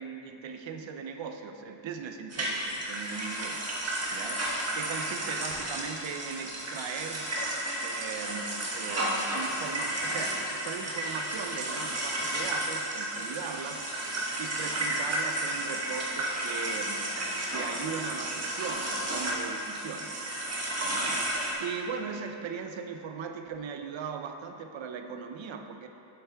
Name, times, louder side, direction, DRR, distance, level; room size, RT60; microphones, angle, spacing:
voice 1, 0.0-7.3 7.8-17.1 17.5-20.2 20.8-25.9, right 6 dB, 85° right, 6 dB, 0.7 m, -39 dB
sound 1, 2.3-21.5, right 1 dB, 35° right, 1.3 m, -32 dB
8.2 x 7.9 x 3.4 m, 2.9 s
wide cardioid pair, 170°, 44 cm